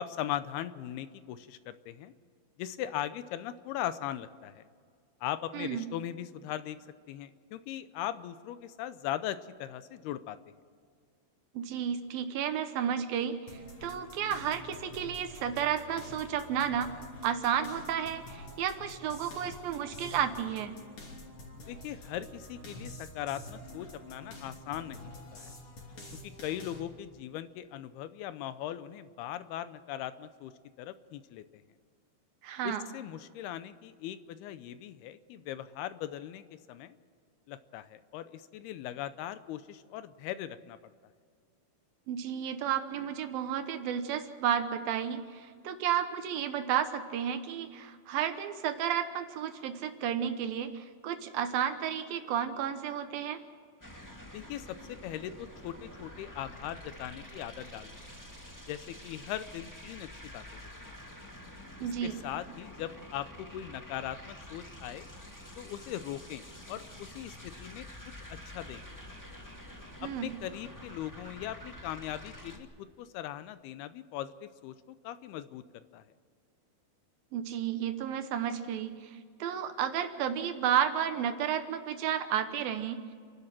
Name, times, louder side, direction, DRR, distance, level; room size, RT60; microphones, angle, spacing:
voice 1, 0.0-2.1 2.6-4.7 5.2-6.8 7.1-10.4 21.7-25.5 26.2-30.5 30.8-31.6 32.6-37.0 37.5-40.8 54.3-58.0 58.7-60.9 62.0-65.1 65.6-66.4 66.7-67.9 68.3-69.0 70.0-74.7 75.0-76.0, left 12 dB, 80° left, 13 dB, 2.6 m, -39 dB
voice 2, 5.5-5.9 11.5-16.9 17.2-20.7 32.4-32.8 42.1-53.4 61.8-62.2 70.0-70.3 77.3-79.1 79.4-83.0, right 9 dB, 70° right, 9 dB, 2.6 m, -32 dB
sound 1, 13.5-26.8, left 1 dB, 35° left, 3.6 m, -48 dB
sound 2, 53.8-72.6, left 1 dB, 15° left, 0.6 m, -48 dB
30.0 x 12.0 x 7.5 m, 2.1 s
omnidirectional pair, 4.6 m